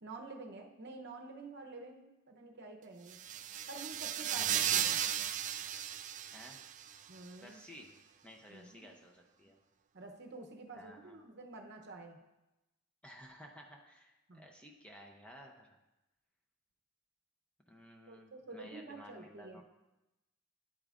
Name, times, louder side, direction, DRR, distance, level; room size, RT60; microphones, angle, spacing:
voice 1, 0.0-3.2 3.7-5.0 7.1-7.6 8.5-8.8 9.9-12.2 14.3-14.5 18.1-19.6, right 3 dB, 55° right, 3 dB, 0.8 m, -49 dB
sound 1, 3.1-7.0, right 10 dB, 35° right, 0.3 m, -35 dB
voice 2, 6.3-6.6 7.4-7.9 8.2-9.6 10.7-11.2 13.0-15.8 17.7-19.6, equal, 5° left, 1 dB, 0.6 m, -54 dB
9.1 x 8.6 x 2.5 m, 0.98 s
head